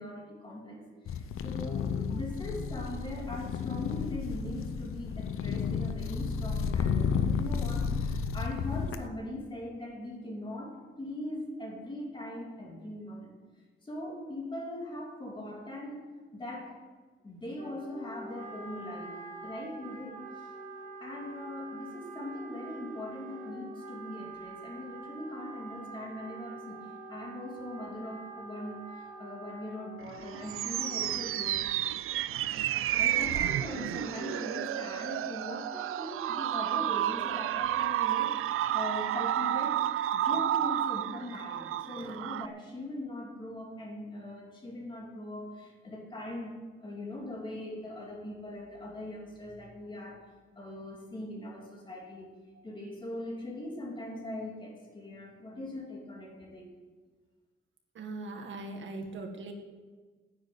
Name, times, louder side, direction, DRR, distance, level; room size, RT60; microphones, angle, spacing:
voice 1, 0.0-13.3 13.8-16.1 16.3-16.8 17.2-20.5 21.0-31.7 32.6-39.9 40.1-50.3 50.5-52.3 52.6-56.7, left 1 dB, 20° left, -1 dB, 2.8 m, -41 dB
sound 1, 1.1-9.1, left 6 dB, 90° left, 0.8 m, -32 dB
Wind instrument woodwind instrument, 17.5-31.6, right 3 dB, 30° right, 2.8 m, -46 dB
sound 2, 30.1-42.5, right 12 dB, 85° right, 0.4 m, -31 dB
voice 2, 58.0-59.5, right 2 dB, 65° right, 3 dB, 1.8 m, -40 dB
10.5 x 9.0 x 9.3 m, 1.4 s
wide cardioid pair, 180°, 21 cm